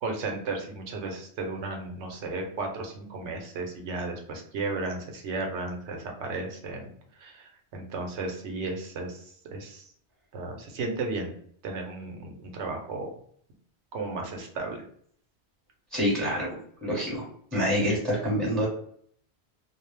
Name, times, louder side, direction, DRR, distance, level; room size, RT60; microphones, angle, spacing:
voice 1, 0.0-6.9 7.2-9.8 10.3-11.3 11.6-13.1 13.9-14.8, right 3 dB, 85° right, 2 dB, 0.9 m, -34 dB
voice 2, 15.9-17.3 17.5-18.7, equal, ahead, -4 dB, 1.0 m, -27 dB
2.3 x 2.0 x 3.1 m, 0.62 s
omnidirectional pair, 1.2 m